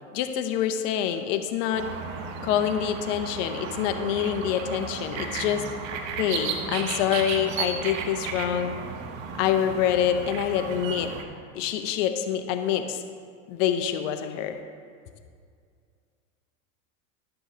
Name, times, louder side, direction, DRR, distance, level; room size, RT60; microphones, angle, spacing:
voice 1, 0.1-1.9 2.4-5.6 6.2-8.7 9.4-11.1 11.5-13.0 13.5-14.6, left 9 dB, 65° left, 7 dB, 0.7 m, -26 dB
sound 1, 1.7-11.2, right 5 dB, 75° right, 1.1 m, -34 dB
11.5 x 7.9 x 2.8 m, 2.2 s
supercardioid pair, 115°, 40 cm